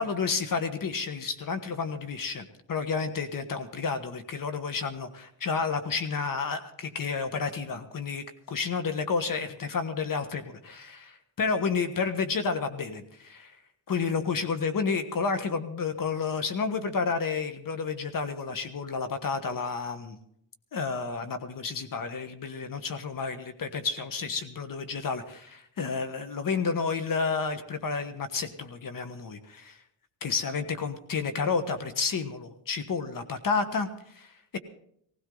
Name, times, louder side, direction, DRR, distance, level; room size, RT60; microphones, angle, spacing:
voice 1, 0.0-13.6 13.9-20.2 20.7-29.8 30.2-34.6, left 5 dB, 50° left, 9 dB, 1.4 m, -31 dB
18.0 x 16.5 x 3.9 m, 0.70 s
cardioid pair, 100°, 42 cm